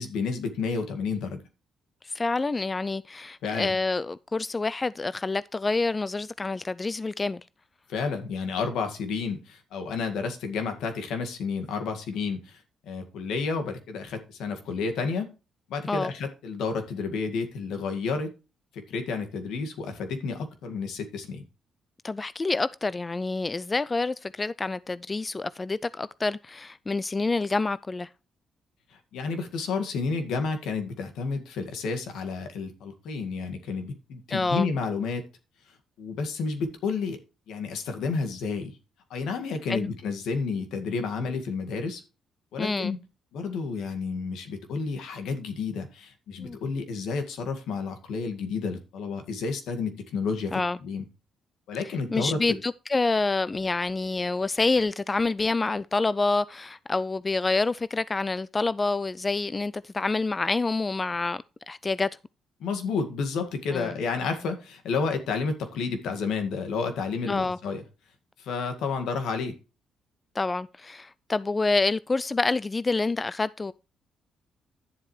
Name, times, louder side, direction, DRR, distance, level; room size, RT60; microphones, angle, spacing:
voice 1, 0.0-1.4 3.4-3.8 7.9-15.3 15.7-18.3 18.7-21.4 28.9-35.3 36.0-37.2 37.5-38.8 39.1-42.0 42.5-43.0 43.3-51.0 51.7-52.4 62.6-67.8 68.4-69.6, left 4 dB, 80° left, 2.0 m, -31 dB
voice 2, 2.0-7.4 15.9-16.1 22.0-28.1 34.3-34.7 39.7-39.9 42.6-42.9 46.4-46.6 50.5-50.8 52.1-62.1 63.7-63.9 67.3-67.6 70.4-73.7, left 3 dB, 25° left, 0.3 m, -27 dB
11.0 x 7.5 x 3.2 m
cardioid pair, 90°, 0 cm